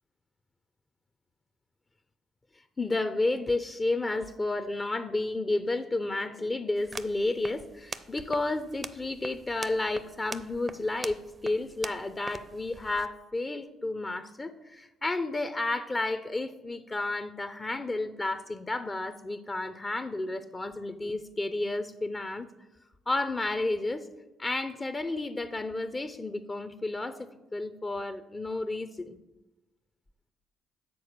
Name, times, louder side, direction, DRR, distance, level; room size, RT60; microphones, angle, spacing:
voice 1, 2.8-22.5 23.1-24.1 24.4-29.2, left 2 dB, 30° left, 10 dB, 0.5 m, -31 dB
sound 1, 6.8-13.1, right 4 dB, 35° right, 0.5 m, -43 dB
6.9 x 4.1 x 6.6 m, 1.0 s
hypercardioid pair, 55°, 0 cm